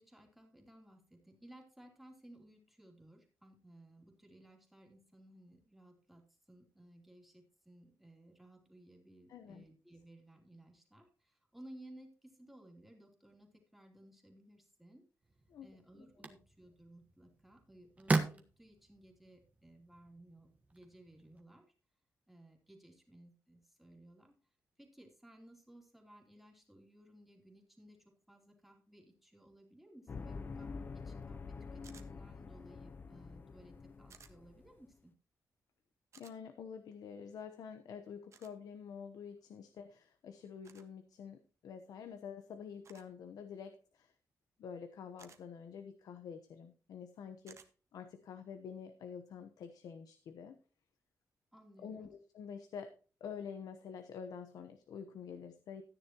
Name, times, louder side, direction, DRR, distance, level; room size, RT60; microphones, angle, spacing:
voice 1, 0.0-15.0 15.6-21.7 22.3-24.3 24.8-35.1 51.5-52.2, right 1 dB, 5° right, 1 dB, 2.9 m, -59 dB
voice 2, 9.3-9.6 15.5-15.7 36.2-44.1 44.6-47.6 47.9-50.6 51.8-55.8, left 7 dB, 90° left, 8 dB, 1.0 m, -48 dB
sound 1, 15.2-21.4, right 3 dB, 25° right, 1.4 m, -40 dB
sound 2, 30.1-34.9, left 4 dB, 35° left, 0.5 m, -47 dB
sound 3, 31.8-32.1 34.1-34.3 36.1-36.4 38.3-38.5 40.6-40.9 42.8-43.1 45.2-45.4 47.5-47.7, right 6 dB, 50° right, 1.4 m, -58 dB
13.5 x 9.9 x 3.0 m, 0.37 s
wide cardioid pair, 145°, 6 cm